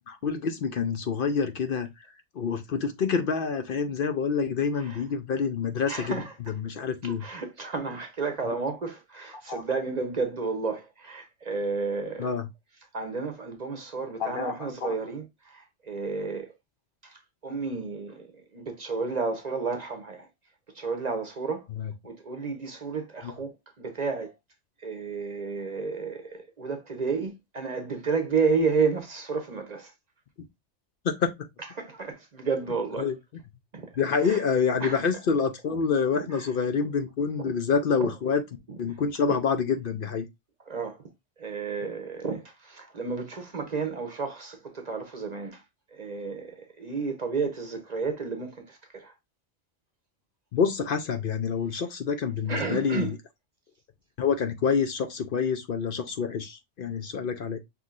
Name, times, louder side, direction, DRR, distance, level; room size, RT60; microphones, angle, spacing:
voice 1, 0.1-1.9 2.4-7.2 9.5-9.6 12.2-12.4 14.2-15.0 21.8-21.9 23.2-23.3 31.0-31.3 33.0-33.2 34.0-38.4 38.8-40.3 50.5-53.2 54.2-57.6, left 6 dB, 60° left, 0.7 m, -27 dB
voice 2, 5.9-6.3 7.0-12.3 12.9-16.5 17.0-20.3 20.7-21.7 22.0-24.3 24.8-29.9 31.8-33.1 33.7-33.9 34.2-34.4 34.8-35.0 36.2-36.5 36.8-36.9 37.4-37.5 38.0-38.1 40.7-41.0 41.4-45.6 45.9-49.1 52.5-53.1, right 4 dB, 40° right, 0.8 m, -31 dB
5.9 x 3.1 x 2.4 m
omnidirectional pair, 1.2 m